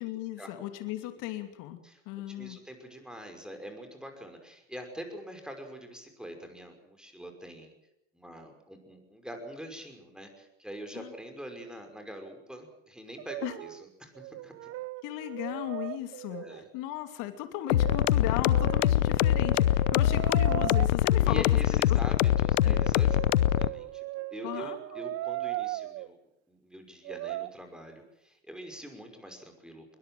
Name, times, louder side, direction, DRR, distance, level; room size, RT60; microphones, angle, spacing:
voice 1, 0.0-1.8 2.1-2.6 11.0-11.1 13.4-13.5 15.0-16.4 16.7-21.4 21.9-22.0 22.6-22.8 24.4-25.0, left 13 dB, 55° left, 8 dB, 2.8 m, -36 dB
voice 2, 2.3-7.7 8.1-14.7 15.5-15.6 16.3-16.7 21.2-26.2 26.5-29.9, equal, ahead, 4 dB, 5.6 m, -44 dB
Brass instrument, 13.2-13.9 14.2-16.7 17.7-20.9 22.2-26.1 27.0-27.5, right 18 dB, 40° right, 0.8 m, -38 dB
sound 1, 17.7-23.7, left 12 dB, 85° left, 0.9 m, -23 dB
22.0 x 20.5 x 7.8 m, 0.87 s
hypercardioid pair, 105°, 38 cm